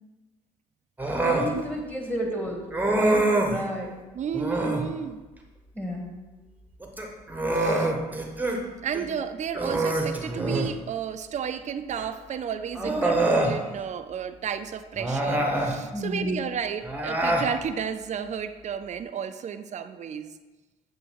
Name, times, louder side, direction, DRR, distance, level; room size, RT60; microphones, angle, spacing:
Human voice, 1.0-1.5 2.7-3.6 4.3-4.9 6.8-8.6 8.9-9.1 9.5-10.8 12.0-12.1 12.7-13.6 15.0-15.8 16.8-17.5, right 2 dB, 10° right, 1.0 m, -25 dB
voice 1, 1.2-2.6 2.9-3.9 5.7-6.1 15.9-16.4, left 1 dB, 10° left, 0 dB, 1.6 m, -30 dB
voice 2, 4.1-5.2 7.5-7.9 8.8-20.3, right 7 dB, 40° right, 10 dB, 0.4 m, -32 dB
7.7 x 2.6 x 4.6 m, 1.2 s
hypercardioid pair, 50°, 18 cm